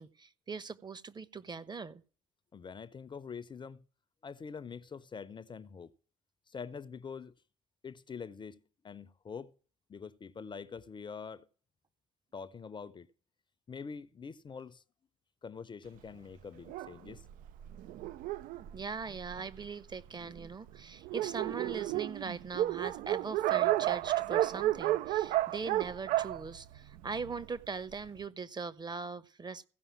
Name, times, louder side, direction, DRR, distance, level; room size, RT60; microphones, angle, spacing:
voice 1, 0.0-2.0 18.7-29.7, right 4 dB, 25° right, 1.0 m, -41 dB
voice 2, 2.5-3.8 4.2-5.9 6.5-7.3 7.8-9.5 9.9-11.5 12.3-13.1 13.7-14.8 15.4-17.2, left 5 dB, 30° left, 0.7 m, -45 dB
Dog, 16.7-19.7 20.4-20.5 20.7-20.8 21.0-27.4, right 15 dB, 60° right, 0.6 m, -32 dB
15.5 x 5.5 x 7.3 m
hypercardioid pair, 55°, 16 cm